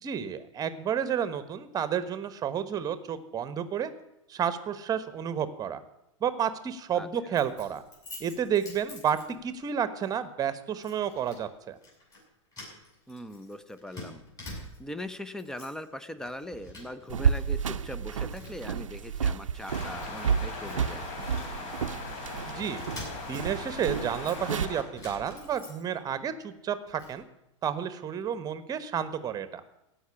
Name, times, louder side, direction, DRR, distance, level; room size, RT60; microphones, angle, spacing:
voice 1, 0.0-3.9 4.3-5.8 6.2-7.8 8.2-11.8 22.5-22.8 23.3-27.2 27.6-29.6, right 8 dB, 25° right, 13 dB, 1.1 m, -31 dB
voice 2, 6.9-7.4 13.1-21.1, left 1 dB, 5° left, 13 dB, 0.8 m, -41 dB
Keys jangling, 7.4-9.7 10.0-10.2 10.8-11.4 11.8-12.2 12.5-15.0 15.3-15.9 16.2-17.4 17.6-18.8 19.2-19.3 19.7-22.0 22.6-26.2 26.5-27.2, left 1 dB, 20° left, 7.3 m, -47 dB
sound 1, 17.1-24.7, right 7 dB, 80° right, 0.6 m, -31 dB
sound 2, 19.7-24.8, left 3 dB, 40° left, 3.2 m, -39 dB
16.0 x 5.8 x 9.9 m, 0.87 s
hypercardioid pair, 110°, 16 cm